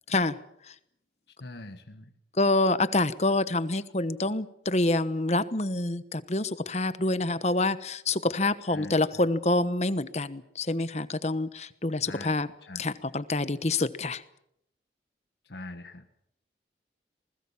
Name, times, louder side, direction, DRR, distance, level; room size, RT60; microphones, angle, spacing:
voice 1, 0.1-0.4 0.7-0.8 2.4-12.5 12.7-14.2, left 2 dB, 40° left, 14 dB, 1.1 m, -27 dB
voice 2, 1.4-2.1 8.7-9.2 12.1-12.4 12.7-12.8 15.4-16.1, left 2 dB, 70° left, 6 dB, 1.5 m, -42 dB
27.5 x 20.5 x 7.2 m, 0.74 s
head